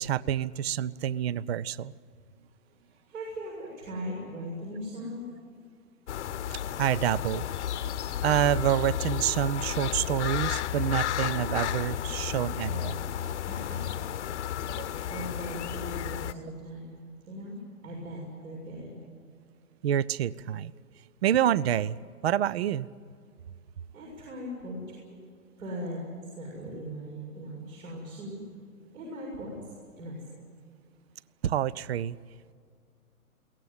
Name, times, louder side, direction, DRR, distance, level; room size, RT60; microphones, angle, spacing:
voice 1, 0.0-1.9 6.8-7.4 8.2-13.1 14.7-14.9 19.8-20.7 21.2-22.0 22.2-22.9 31.4-32.2, right 11 dB, 45° right, 22 dB, 0.6 m, -27 dB
voice 2, 2.8-5.2 13.3-14.3 14.5-17.0 17.3-17.6 17.8-19.0 23.9-25.2 25.6-26.0 26.3-28.4 28.9-29.6 30.0-30.4, equal, 65° right, -2 dB, 6.8 m, -39 dB
sound 1, 6.1-16.3, left 10 dB, 50° left, 1.0 m, -32 dB
22.5 x 18.0 x 9.6 m, 2.2 s
hypercardioid pair, 135°, 45 cm